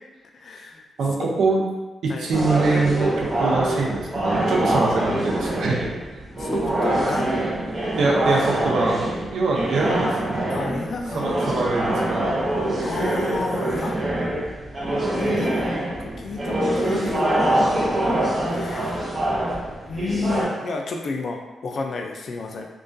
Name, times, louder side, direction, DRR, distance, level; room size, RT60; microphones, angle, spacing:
voice 1, 0.3-0.8 2.1-2.3 6.4-7.3 10.5-11.3 12.8-14.0 15.0-17.7 18.5-19.1 19.9-22.7, left 3 dB, 55° left, 2 dB, 0.3 m, -31 dB
voice 2, 1.0-1.6 2.0-5.9 8.0-10.2 11.1-12.3, right 3 dB, 80° right, -2 dB, 0.5 m, -23 dB
sound 1, 2.3-20.4, right 1 dB, 35° right, 0.6 m, -24 dB
2.2 x 2.2 x 2.5 m, 1.1 s
cardioid pair, 105°, 0 cm